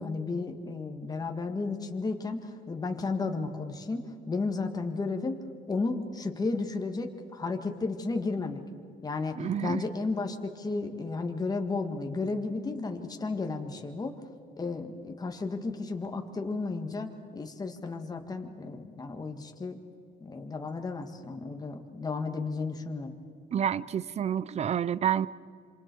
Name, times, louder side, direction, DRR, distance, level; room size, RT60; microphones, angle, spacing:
voice 1, 0.0-5.4 5.7-8.6 9.0-14.1 14.6-19.8 20.2-23.2, left 3 dB, 20° left, 4 dB, 1.8 m, -33 dB
voice 2, 9.3-9.8 23.5-25.3, right 9 dB, 40° right, 19 dB, 0.6 m, -29 dB
27.0 x 26.0 x 4.7 m, 2.4 s
cardioid pair, 110°, 17 cm